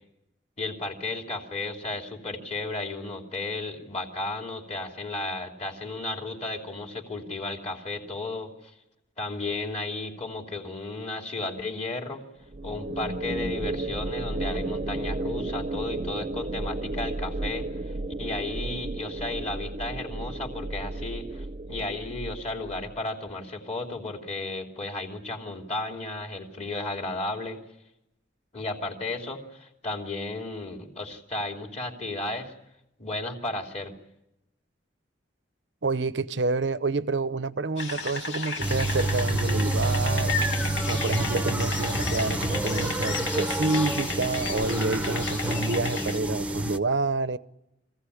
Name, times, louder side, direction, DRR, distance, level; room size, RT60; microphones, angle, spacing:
voice 1, 0.6-8.7 9.2-12.2 12.6-27.6 28.5-32.5 33.0-33.9, left 2 dB, 40° left, 2.9 m, -34 dB
sound 1, 12.5-23.0, right 2 dB, 45° right, 0.8 m, -33 dB
voice 2, 35.8-40.4 40.9-47.4, right 3 dB, 75° right, 0.8 m, -28 dB
sound 2, 37.8-46.2, left 4 dB, 80° left, 2.0 m, -33 dB
sound 3, 38.6-46.8, right 2 dB, 10° right, 0.9 m, -28 dB
24.5 x 16.0 x 9.9 m
head